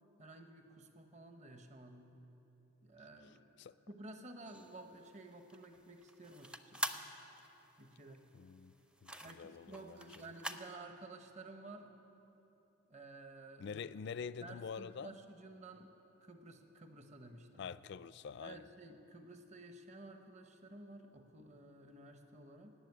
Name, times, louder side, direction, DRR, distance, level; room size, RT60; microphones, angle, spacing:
voice 1, 0.2-2.2 2.8-3.5 3.9-7.1 7.8-8.3 9.2-12.0 12.9-13.8 14.2-17.7 18.4-22.7, right 2 dB, 35° right, 6 dB, 0.9 m, -53 dB
sound 1, 4.4-10.7, right 1 dB, 5° right, 0.5 m, -46 dB
voice 2, 8.3-8.7 9.0-10.0 13.6-15.1 17.6-18.7, left 6 dB, 60° left, 16 dB, 0.3 m, -46 dB
17.5 x 7.3 x 9.6 m, 2.9 s
head